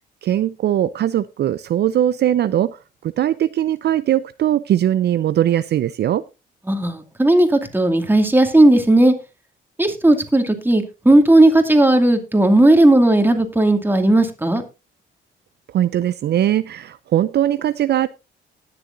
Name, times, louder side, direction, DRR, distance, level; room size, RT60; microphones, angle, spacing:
voice 1, 0.2-2.8 3.2-6.2 15.7-18.1, right 11 dB, 60° right, 0.5 m, -20 dB
voice 2, 6.7-9.1 9.8-14.6, right 1 dB, 10° right, 2.3 m, -15 dB
19.5 x 6.8 x 2.6 m
cardioid pair, 90°, 20 cm